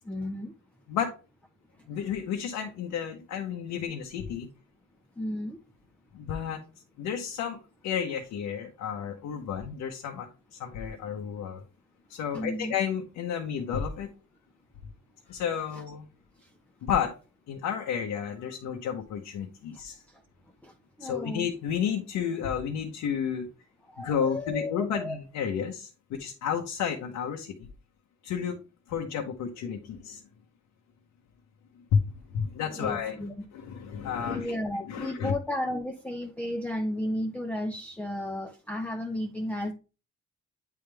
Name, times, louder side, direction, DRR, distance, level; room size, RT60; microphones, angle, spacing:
voice 1, 0.0-0.5 1.8-1.9 5.2-5.6 12.3-12.7 15.7-15.8 16.4-16.5 19.7-19.8 20.1-20.2 20.6-21.5 23.8-25.2 32.7-33.4 34.2-39.7, left 1 dB, 5° left, 0.5 m, -34 dB
voice 2, 1.9-4.5 6.1-6.6 7.0-7.6 7.8-11.6 12.1-14.1 15.3-16.1 16.8-17.2 17.5-20.0 21.0-23.5 24.0-27.7 28.2-28.6 28.9-30.2 31.9-32.0 32.3-33.3 33.5-34.6 34.9-35.3, left 7 dB, 85° left, 0.8 m, -31 dB
8.4 x 3.5 x 3.3 m
cardioid pair, 90°, 30 cm